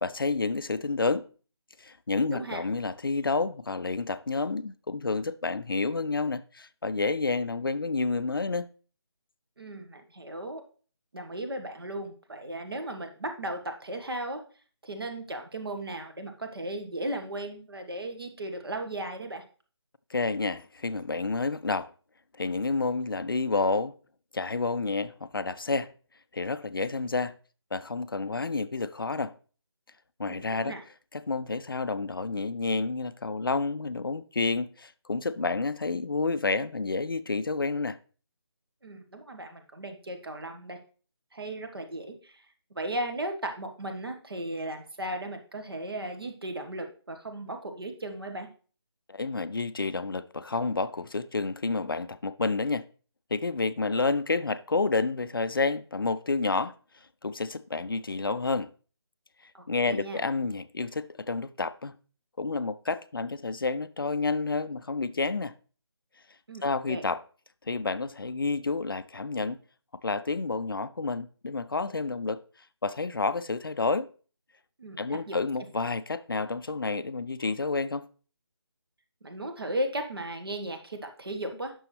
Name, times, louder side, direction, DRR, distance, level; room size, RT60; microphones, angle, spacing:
voice 1, 0.0-1.3 1.8-8.7 20.1-21.9 22.4-23.9 24.3-25.9 26.3-27.3 27.7-29.3 30.2-30.8 31.1-38.0 49.1-52.8 53.3-56.7 57.2-58.7 59.7-61.9 62.4-65.5 66.6-67.2 67.7-69.6 70.0-72.4 72.8-74.1 75.0-78.1, left 3 dB, 55° left, 0.5 m, -29 dB
voice 2, 2.1-2.6 9.6-10.6 11.1-14.4 14.8-19.4 30.2-30.8 38.8-40.8 41.3-42.4 42.7-48.5 59.5-60.2 66.5-67.0 74.8-75.4 79.2-81.7, right 1 dB, 60° right, 1.5 m, -36 dB
9.4 x 6.2 x 3.2 m
figure-of-eight pair, 155°, 14 cm